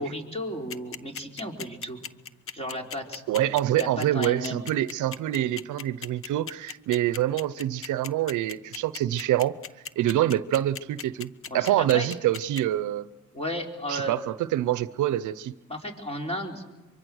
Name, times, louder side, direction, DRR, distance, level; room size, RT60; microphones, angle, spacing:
voice 1, 0.0-2.0 2.5-3.2 3.8-4.7 11.5-12.1 13.3-14.1 15.7-16.6, equal, 20° left, 4.4 m, -33 dB
sound 1, 0.7-12.6, left 7 dB, 45° left, 0.9 m, -37 dB
voice 2, 3.3-9.5 10.0-13.1 13.9-15.5, right 13 dB, 80° right, 0.7 m, -26 dB
24.5 x 23.5 x 6.4 m
cardioid pair, 90°, 30 cm